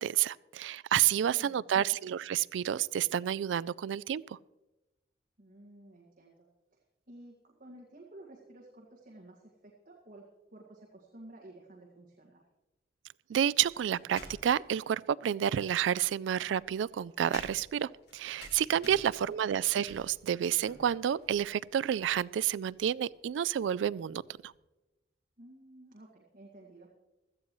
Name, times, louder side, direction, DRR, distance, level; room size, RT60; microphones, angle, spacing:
voice 1, 0.0-4.4 13.3-24.5, right 9 dB, 85° right, 20 dB, 0.3 m, -30 dB
voice 2, 1.2-2.0 5.4-6.8 7.1-10.2 10.5-12.4 18.8-18.9 19.2-19.4 25.4-26.9, right 1 dB, 50° right, -2 dB, 1.9 m, -53 dB
sound 1, 13.6-14.8 15.9-24.6, left 2 dB, 60° left, 2.5 m, -54 dB
16.5 x 13.5 x 3.1 m, 1.1 s
head